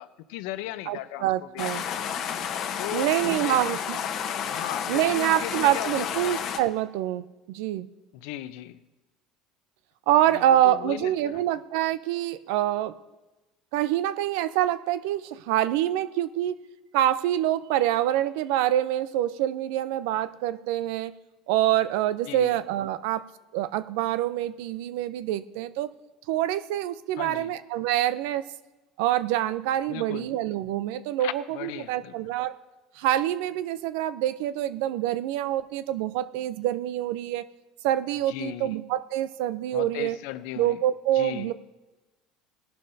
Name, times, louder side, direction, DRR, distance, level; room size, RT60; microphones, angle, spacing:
voice 1, 0.0-1.6 1.9-2.0 2.8-3.8 4.5-6.3 8.1-8.8 10.3-11.6 22.2-22.5 27.2-27.5 29.9-30.3 31.2-32.1 38.3-38.8 39.7-40.8 41.1-41.5, left 14 dB, 80° left, 13 dB, 0.6 m, -37 dB
voice 2, 0.9-1.8 2.9-4.0 4.9-7.9 10.1-12.9 13.7-16.6 16.9-21.2 21.5-23.3 23.5-25.9 26.3-28.4 29.0-32.6 33.0-37.5 37.8-40.2 40.6-41.5, right 13 dB, 80° right, 15 dB, 0.5 m, -26 dB
sound 1, 1.6-6.6, left 8 dB, 55° left, 0.9 m, -31 dB
19.0 x 11.5 x 2.7 m, 1.1 s
cardioid pair, 125°, 0 cm